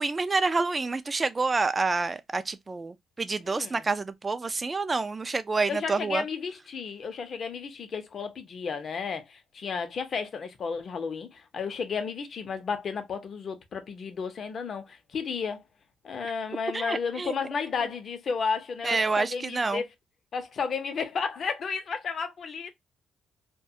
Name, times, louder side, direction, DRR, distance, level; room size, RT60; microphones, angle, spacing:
voice 1, 0.0-6.2 16.7-17.3 18.8-19.8, right 3 dB, 25° right, 0.3 m, -28 dB
voice 2, 3.5-3.8 5.7-15.6 16.0-19.8 20.3-22.7, left 5 dB, 50° left, 0.6 m, -33 dB
2.3 x 2.1 x 2.6 m
cardioid pair, 90°, 0 cm